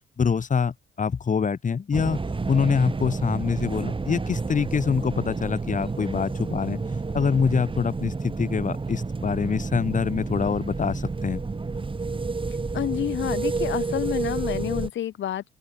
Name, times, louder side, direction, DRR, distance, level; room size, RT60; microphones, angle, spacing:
voice 1, 0.2-2.2 2.5-6.8 7.1-11.4, left 6 dB, 40° left, 2.8 m, -25 dB
sound 1, 1.9-14.9, right 3 dB, 25° right, 5.1 m, -30 dB
voice 2, 12.7-15.4, left 11 dB, 70° left, 4.5 m, -28 dB
open air
cardioid pair, 90°, 20 cm